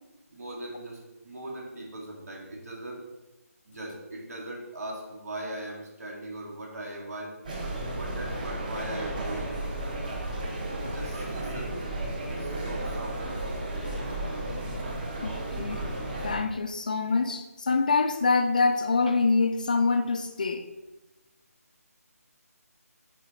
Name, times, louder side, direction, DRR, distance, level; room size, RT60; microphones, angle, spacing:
voice 1, 0.3-3.1 3.7-7.4 7.9-9.6 10.8-11.7 12.3-13.2, right 1 dB, 70° right, 2.3 m, -39 dB
sound 1, 7.4-16.4, right 1 dB, 30° right, 1.2 m, -33 dB
voice 2, 15.2-15.8 16.2-20.7, left 4 dB, 30° left, 0.4 m, -25 dB
9.4 x 4.9 x 3.1 m
figure-of-eight pair, 170°, 9 cm